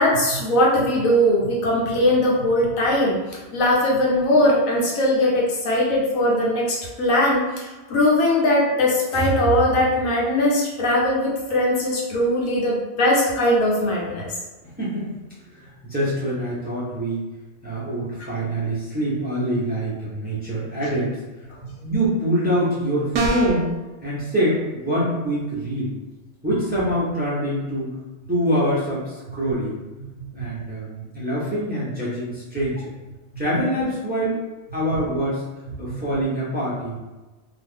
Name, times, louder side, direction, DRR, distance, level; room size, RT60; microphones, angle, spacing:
voice 1, 0.0-3.2 3.5-14.3 18.2-18.3 30.4-30.5 35.9-36.0, left 1 dB, 90° left, -4 dB, 1.2 m, -20 dB
voice 2, 14.6-17.2 17.6-21.2 21.8-23.7 24.0-25.9 26.4-27.9 28.3-29.7 30.3-32.9 33.4-34.4 34.7-35.4 35.8-37.0, equal, 10° right, -8 dB, 0.6 m, -25 dB
sound 1, 23.1-23.7, right 3 dB, 90° right, 1.0 m, -22 dB
2.7 x 2.4 x 3.6 m, 1.2 s
omnidirectional pair, 1.4 m